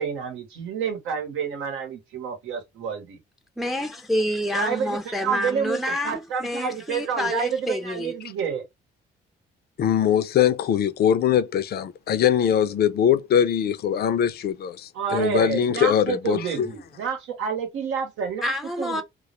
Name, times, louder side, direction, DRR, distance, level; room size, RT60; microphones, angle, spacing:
voice 1, 0.0-3.2 4.5-8.6 14.9-18.4 18.8-19.0, right 6 dB, 90° right, 0.9 m, -29 dB
voice 2, 3.6-8.1 18.4-19.0, left 1 dB, ahead, 0.4 m, -28 dB
voice 3, 9.8-16.7, left 9 dB, 55° left, 0.4 m, -22 dB
2.2 x 2.0 x 2.9 m
cardioid pair, 90°, 20 cm